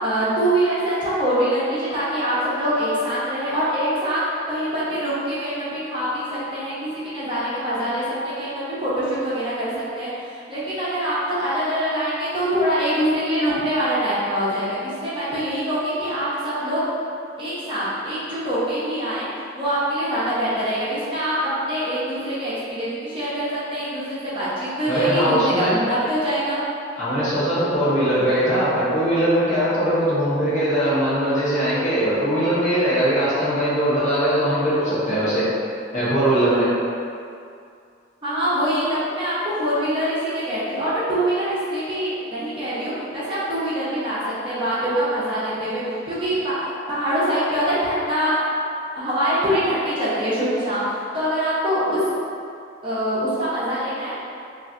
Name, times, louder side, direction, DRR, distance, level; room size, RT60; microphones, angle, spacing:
voice 1, 0.0-4.2 4.5-16.8 17.4-19.3 19.5-21.3 21.6-26.6 38.2-46.6 46.9-48.4 48.9-52.0 52.8-54.1, equal, 25° right, -10 dB, 0.7 m, -24 dB
voice 2, 24.9-25.7 27.0-35.5 35.9-36.7, right 1 dB, 40° left, -11 dB, 0.9 m, -20 dB
3.2 x 2.4 x 2.5 m, 2.4 s
head